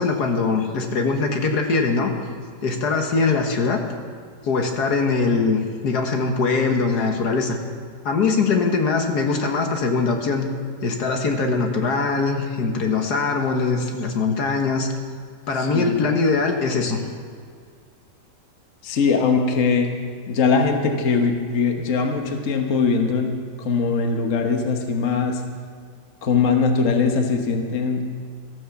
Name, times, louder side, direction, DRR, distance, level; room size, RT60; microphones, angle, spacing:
voice 1, 0.0-2.1 2.6-3.8 4.4-7.6 8.0-10.5 10.8-14.9 15.5-17.0, left 4 dB, 65° left, 3 dB, 1.7 m, -22 dB
voice 2, 15.6-16.0 18.8-19.9 20.3-23.3 23.6-25.4 26.2-28.1, left 5 dB, 50° left, 3 dB, 1.4 m, -21 dB
14.0 x 9.5 x 7.0 m, 2.1 s
omnidirectional pair, 1.9 m